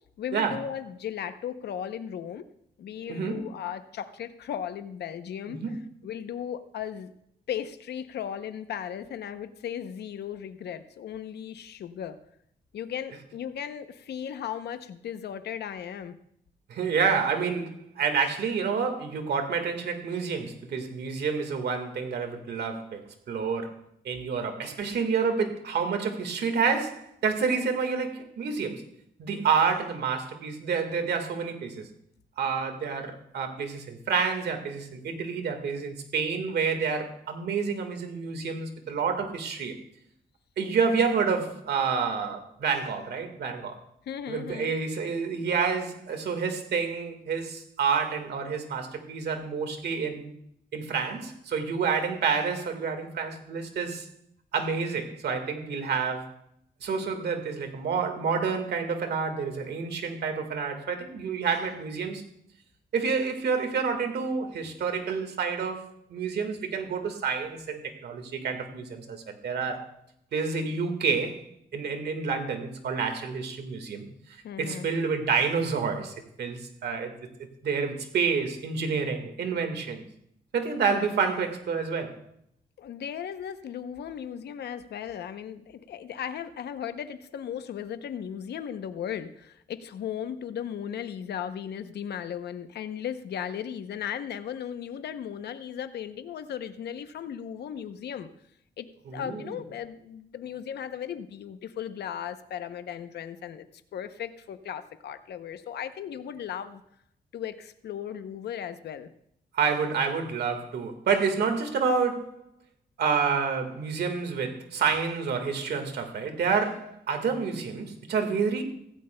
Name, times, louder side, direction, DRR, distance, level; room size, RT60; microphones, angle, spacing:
voice 1, 0.2-2.4 2.8-5.6 6.0-7.1 7.5-12.2 12.7-16.2 44.1-44.7 74.4-74.9 82.8-98.3 98.8-98.9 99.1-106.8 107.3-109.1, left 9 dB, 90° left, 10 dB, 0.7 m, -36 dB
voice 2, 3.1-3.4 5.6-5.8 16.7-23.8 24.0-28.9 29.2-31.9 32.4-39.8 40.6-43.8 44.3-50.3 50.7-54.1 54.5-56.3 56.8-62.2 62.9-69.8 70.3-71.5 71.7-74.0 74.6-77.1 77.6-80.0 80.5-82.2 99.1-99.5 109.5-112.4 113.0-118.6, right 5 dB, 85° right, 6 dB, 1.7 m, -28 dB
16.0 x 15.5 x 2.2 m, 0.73 s
cardioid pair, 75°, 17 cm